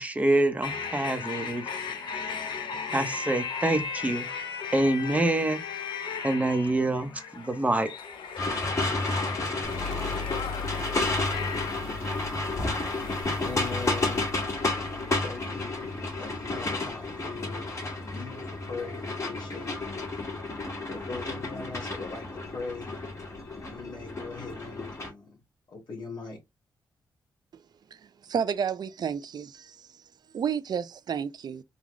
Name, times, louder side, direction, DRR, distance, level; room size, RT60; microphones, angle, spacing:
voice 1, 0.0-1.7 2.9-4.4 4.7-5.6 6.2-7.9, right 2 dB, 15° right, 0.9 m, -26 dB
sound 1, 0.6-13.2, left 6 dB, 80° left, 0.7 m, -36 dB
sound 2, 8.4-25.1, left 2 dB, 40° left, 1.7 m, -31 dB
sound 3, 9.6-16.9, left 5 dB, 10° left, 0.9 m, -42 dB
voice 2, 13.4-14.3 15.2-17.7 18.0-20.0 20.4-23.0 23.6-25.4 25.7-26.4, left 4 dB, 65° left, 1.2 m, -40 dB
voice 3, 27.9-29.9 30.3-31.6, right 7 dB, 60° right, 0.4 m, -31 dB
3.9 x 2.3 x 3.0 m
cardioid pair, 80°, 8 cm